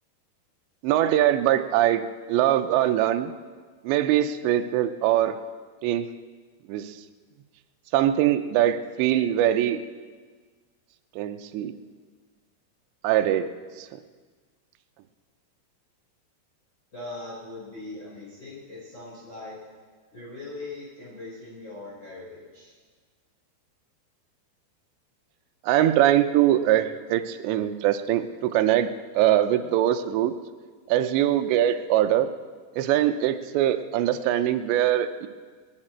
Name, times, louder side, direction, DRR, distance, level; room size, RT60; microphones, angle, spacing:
voice 1, 0.8-3.3 3.8-5.4 5.8-6.1 6.7-7.0 7.9-9.8 11.2-11.7 13.0-13.5 13.8-14.0 25.6-28.9 29.2-30.3 30.9-32.3 32.8-35.3, right 12 dB, 80° right, 8 dB, 2.9 m, -22 dB
voice 2, 16.9-19.5 20.1-22.7, left 2 dB, 25° left, -8 dB, 5.1 m, -40 dB
29.0 x 10.5 x 4.4 m, 1.5 s
omnidirectional pair, 5.2 m